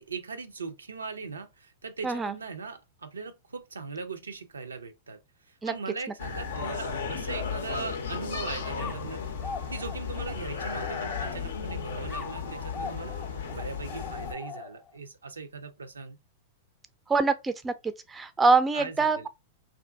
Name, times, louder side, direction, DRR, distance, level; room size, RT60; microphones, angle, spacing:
voice 1, 0.0-5.2 5.5-9.2 9.7-13.1 13.5-16.2 18.7-19.3, right 4 dB, 90° right, 0.4 m, -39 dB
voice 2, 2.0-2.3 5.6-5.7 17.1-19.3, right 4 dB, 15° right, 0.3 m, -25 dB
sound 1, 6.2-14.3, left 6 dB, 75° left, 0.5 m, -34 dB
sound 2, 8.8-11.6 12.1-15.0, left 4 dB, 20° left, 0.7 m, -42 dB
2.5 x 2.4 x 2.3 m
hypercardioid pair, 105°, 0 cm